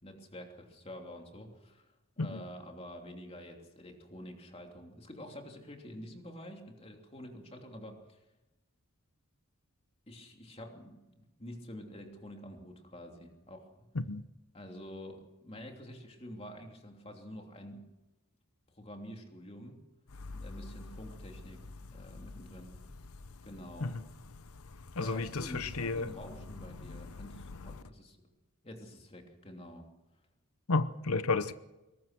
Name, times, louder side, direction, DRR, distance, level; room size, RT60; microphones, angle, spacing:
voice 1, 0.0-8.2 10.1-13.7 14.5-17.9 18.8-19.8 20.3-21.6 21.9-22.7 23.4-24.0 25.0-28.2 28.6-29.9, equal, 25° left, 3 dB, 3.0 m, -48 dB
voice 2, 24.9-26.1 26.9-27.0 30.7-31.5, left 3 dB, 75° left, 13 dB, 0.9 m, -32 dB
22.0 x 19.5 x 6.1 m, 1.0 s
head